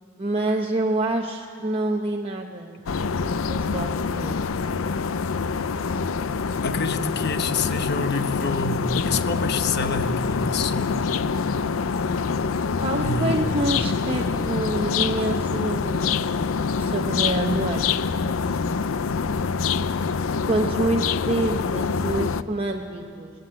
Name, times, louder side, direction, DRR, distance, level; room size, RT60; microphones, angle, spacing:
voice 1, 0.2-2.7 3.4-4.4 12.8-16.4 16.8-17.9 20.5-23.3, right 2 dB, 30° right, 1 dB, 0.8 m, -27 dB
sound 1, 2.9-22.4, left 5 dB, 85° left, 0.5 m, -25 dB
voice 2, 6.6-10.9 13.0-13.6, left 3 dB, 55° left, 9 dB, 1.0 m, -27 dB
20.0 x 15.5 x 8.7 m, 2.3 s
head